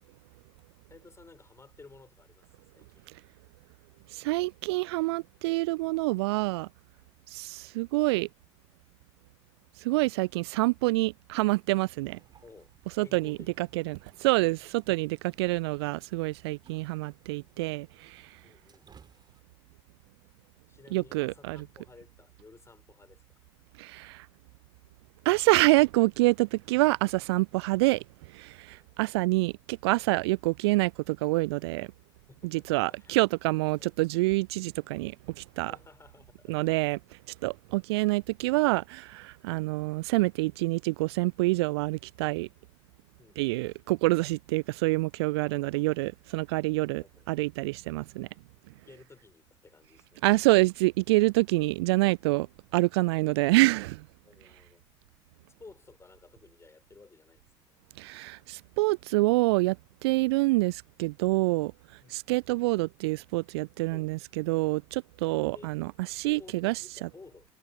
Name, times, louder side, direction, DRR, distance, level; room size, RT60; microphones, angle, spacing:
voice 1, 0.9-2.5 2.7-3.1 12.4-13.7 18.4-18.9 20.7-23.2 28.7-28.9 32.3-33.2 33.8-33.9 35.7-36.8 43.2-43.7 45.4-45.8 47.0-47.3 48.8-50.6 54.2-54.8 55.6-57.4 62.0-62.2 63.9-64.1 65.5-65.7 66.3-67.5, left 4 dB, 20° left, 5.9 m, -54 dB
voice 2, 4.1-6.7 7.3-8.3 9.8-12.2 13.0-18.4 20.9-21.6 23.8-24.3 25.3-28.0 28.3-31.9 32.4-35.7 36.5-37.0 37.4-42.5 43.4-48.3 50.2-52.5 52.7-54.0 58.0-59.8 60.0-61.7 62.1-66.8, right 22 dB, 60° right, 0.4 m, -27 dB
sound 1, 12.0-19.4, right 6 dB, 30° right, 4.1 m, -62 dB
figure-of-eight pair, 65°, 15 cm